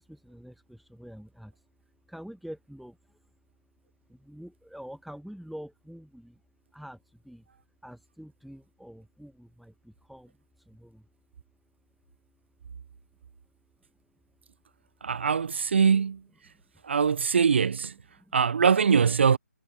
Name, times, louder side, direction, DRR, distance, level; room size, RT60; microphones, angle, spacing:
voice 1, 0.0-1.7 2.1-3.3 4.1-6.4 6.7-7.4 7.8-11.1 13.9-14.2 16.5-16.6 18.2-18.4, equal, ahead, 1.4 m, -46 dB
voice 2, 15.0-16.2 16.8-17.9 18.3-19.4, right 6 dB, 45° right, 0.9 m, -22 dB
figure-of-eight pair, 150°, 9 cm